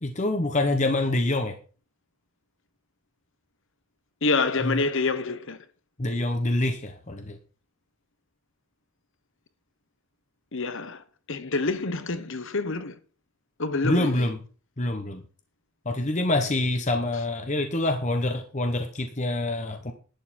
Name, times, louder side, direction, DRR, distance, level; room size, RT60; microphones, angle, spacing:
voice 1, 0.0-1.6 4.6-4.8 6.0-7.4 13.8-14.4 14.8-15.2 15.8-19.9, left 2 dB, 35° left, 1.1 m, -26 dB
voice 2, 4.2-5.6 10.5-13.0 13.6-14.2, left 3 dB, 60° left, 1.1 m, -27 dB
11.5 x 9.9 x 4.3 m
head